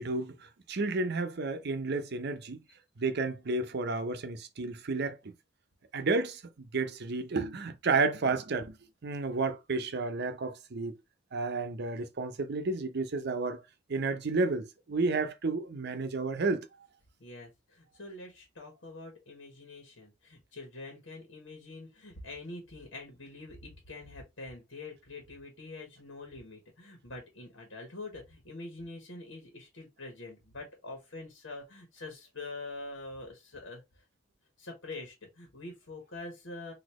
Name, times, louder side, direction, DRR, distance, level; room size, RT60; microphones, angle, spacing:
voice 1, 0.0-2.6 3.0-5.3 5.9-8.8 9.0-10.9 11.3-13.6 13.9-16.7, right 3 dB, 60° right, 0.7 m, -31 dB
voice 2, 17.2-34.0 34.6-36.7, left 2 dB, 90° left, 1.6 m, -45 dB
4.1 x 2.8 x 2.9 m
head